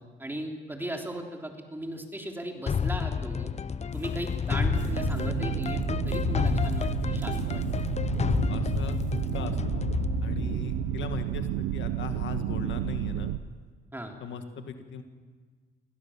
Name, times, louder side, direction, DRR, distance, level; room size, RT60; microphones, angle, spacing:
voice 1, 0.0-3.5 3.9-7.8 13.9-14.2, right 1 dB, 10° right, 2 dB, 3.3 m, -37 dB
sound 1, 2.7-11.5, left 6 dB, 35° left, 0.7 m, -30 dB
sound 2, 3.9-9.5, right 4 dB, 45° right, 5.3 m, -62 dB
sound 3, 4.6-13.4, right 13 dB, 85° right, 0.7 m, -31 dB
voice 2, 8.5-10.0 10.2-13.3 14.2-15.0, left 7 dB, 70° left, 7 dB, 1.9 m, -38 dB
23.5 x 16.5 x 7.3 m, 1.5 s
cardioid pair, 90°, 20 cm